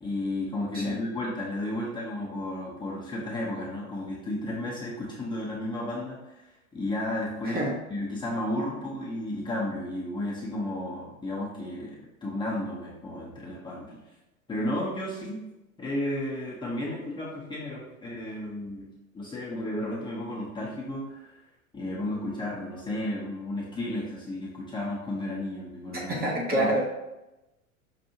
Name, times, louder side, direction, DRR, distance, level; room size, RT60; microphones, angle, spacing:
voice 1, 0.0-6.5 6.7-7.6 7.9-14.0 14.5-15.4 15.8-18.9 19.1-21.4 21.7-26.1 26.5-26.7, left 1 dB, 10° left, -6 dB, 0.9 m, -33 dB
voice 2, 7.5-7.8 25.9-26.9, right 1 dB, 20° right, -3 dB, 0.9 m, -27 dB
5.8 x 2.6 x 2.7 m, 0.98 s
hypercardioid pair, 95°, 43 cm